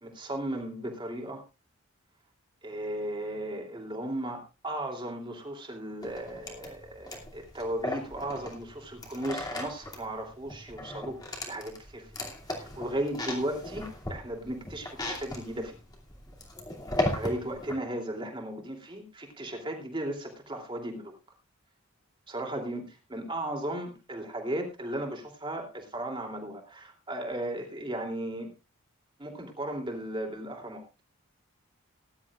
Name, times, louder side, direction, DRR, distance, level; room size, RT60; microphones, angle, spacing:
voice 1, 0.0-1.4 2.6-11.2 11.5-12.1 12.5-15.8 17.1-21.1 22.3-22.8 23.1-28.5 29.2-30.8, right 1 dB, 20° right, 2 dB, 3.0 m, -36 dB
sound 1, 6.0-17.7, left 1 dB, 15° left, 2.6 m, -37 dB
19.5 x 11.5 x 2.4 m, 0.29 s
head